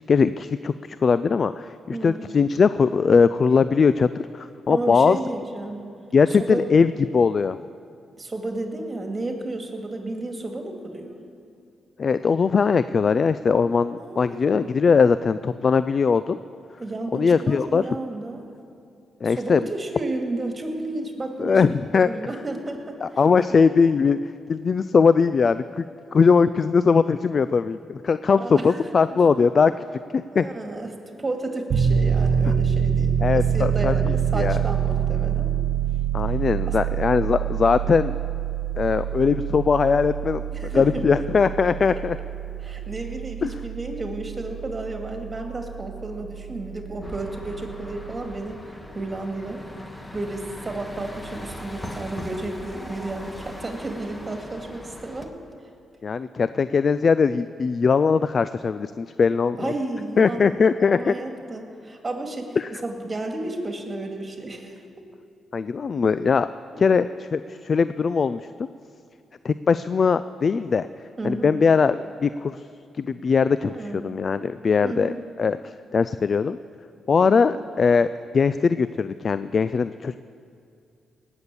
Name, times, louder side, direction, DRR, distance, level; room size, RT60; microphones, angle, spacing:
voice 1, 0.1-5.2 6.1-7.6 12.0-16.4 17.1-17.9 19.2-19.7 21.4-22.1 23.0-25.8 26.1-29.7 30.1-30.5 32.5-32.6 33.2-34.6 36.1-38.2 38.8-40.4 40.7-42.2 43.4-43.5 56.0-59.7 60.2-61.2 62.6-62.7 65.5-66.5 66.8-68.4 69.4-70.9 71.2-72.7 72.9-76.6 77.1-78.1 78.3-80.2, left 5 dB, 50° left, 14 dB, 0.4 m, -20 dB
voice 2, 1.9-2.3 4.7-5.8 6.3-6.7 8.2-11.2 14.0-14.8 16.8-18.4 19.2-23.2 28.4-28.8 29.1-29.2 30.3-35.5 36.7-36.8 40.5-41.0 42.6-49.6 50.1-55.3 59.6-65.0 66.7-67.0 71.2-71.5 73.7-74.0 74.8-75.2 77.4-77.7, right 2 dB, 30° right, 3 dB, 2.4 m, -32 dB
Piano, 31.7-48.4, right 8 dB, 65° right, 1.4 m, -26 dB
sound 1, 47.0-55.3, left 1 dB, 15° left, 1.7 m, -40 dB
18.5 x 7.1 x 8.4 m, 2.4 s
supercardioid pair, 55°, 0 cm